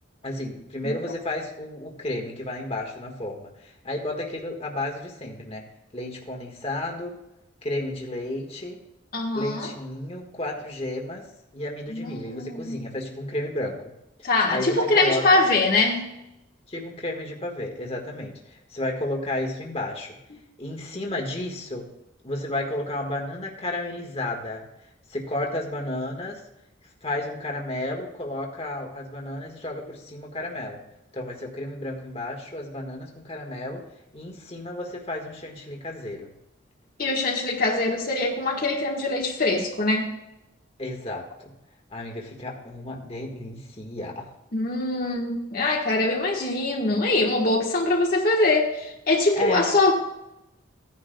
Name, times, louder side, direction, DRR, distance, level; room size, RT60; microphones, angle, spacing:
voice 1, 0.2-5.6 5.9-7.2 7.6-8.8 9.3-11.3 11.5-13.8 14.5-15.4 16.7-20.2 20.6-21.9 22.2-24.6 25.1-26.4 27.0-30.8 31.1-33.8 34.1-36.3 40.8-41.5 41.9-44.3 49.3-49.7, left 1 dB, 30° left, 0 dB, 1.6 m, -32 dB
voice 2, 9.1-9.7 11.9-12.9 14.2-16.2 37.0-40.1 41.1-41.2 44.5-49.9, left 2 dB, 45° left, -2 dB, 1.4 m, -23 dB
16.5 x 10.0 x 2.3 m, 0.88 s
head